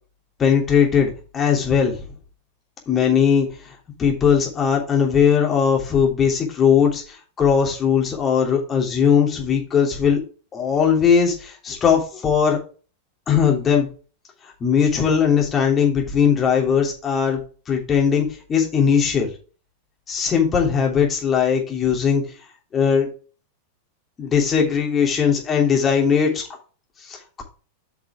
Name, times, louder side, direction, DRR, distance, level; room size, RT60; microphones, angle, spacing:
voice 1, 0.4-2.0 2.9-3.5 4.0-10.2 10.5-12.6 13.3-13.9 14.6-17.4 17.7-19.3 20.1-22.2 22.7-23.1 24.2-26.4 27.0-27.4, left 7 dB, 25° left, 0 dB, 3.1 m, -19 dB
8.7 x 5.9 x 3.6 m, 0.36 s
figure-of-eight pair, 90°, 0 cm